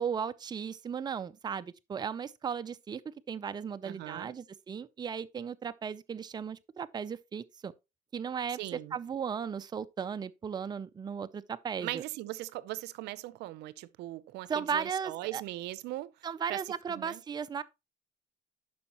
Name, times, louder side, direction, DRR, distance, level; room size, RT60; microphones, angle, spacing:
voice 1, 0.0-3.0 3.3-7.7 8.1-8.6 8.9-12.0 14.5-15.4 16.2-17.6, right 7 dB, 25° right, 0.5 m, -36 dB
voice 2, 3.8-4.4 8.6-9.0 11.8-16.1 16.5-16.6 16.9-17.2, right 16 dB, 85° right, 0.6 m, -39 dB
11.0 x 5.4 x 2.9 m
cardioid pair, 110°, 17 cm